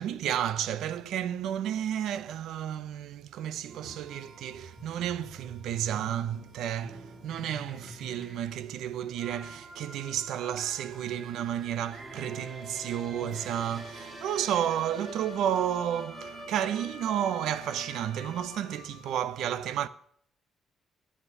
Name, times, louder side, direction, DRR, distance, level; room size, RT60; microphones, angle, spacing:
voice 1, 0.0-19.9, right 10 dB, 80° right, 0.7 m, -32 dB
sound 1, 3.7-19.1, right 1 dB, 35° right, 2.9 m, -45 dB
11.0 x 8.5 x 5.5 m
cardioid pair, 90°, 0 cm